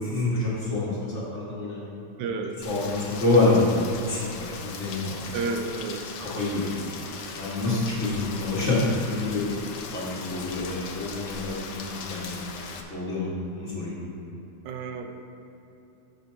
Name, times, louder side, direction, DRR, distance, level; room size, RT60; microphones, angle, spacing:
voice 1, 0.0-1.9 2.6-3.7 4.1-5.2 6.2-6.7 7.3-12.5 12.8-13.9, left 2 dB, 35° left, -8 dB, 1.3 m, -27 dB
voice 2, 2.2-2.6 5.3-6.0 14.7-15.2, right 4 dB, 80° right, 5 dB, 2.0 m, -31 dB
Rain, 2.6-12.8, left 5 dB, 85° left, 1.2 m, -39 dB
13.5 x 6.6 x 2.8 m, 2.9 s
omnidirectional pair, 3.4 m